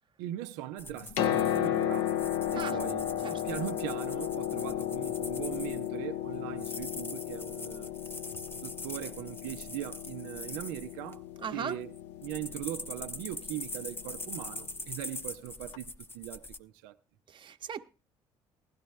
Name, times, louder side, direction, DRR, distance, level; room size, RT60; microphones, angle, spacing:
voice 1, 0.2-2.2 2.5-3.1 3.4-7.9 8.5-11.2 11.5-11.9 12.2-17.0, right 13 dB, 90° right, 0.6 m, -40 dB
sound 1, 0.8-5.9 6.5-11.2 11.7-16.6, left 2 dB, 20° left, 0.8 m, -43 dB
Piano, 0.9-14.6 15.7-15.8, left 11 dB, 85° left, 0.7 m, -34 dB
voice 2, 11.4-11.8 17.3-17.8, right 7 dB, 45° right, 0.9 m, -37 dB
15.5 x 11.5 x 3.2 m
supercardioid pair, 65°, 11 cm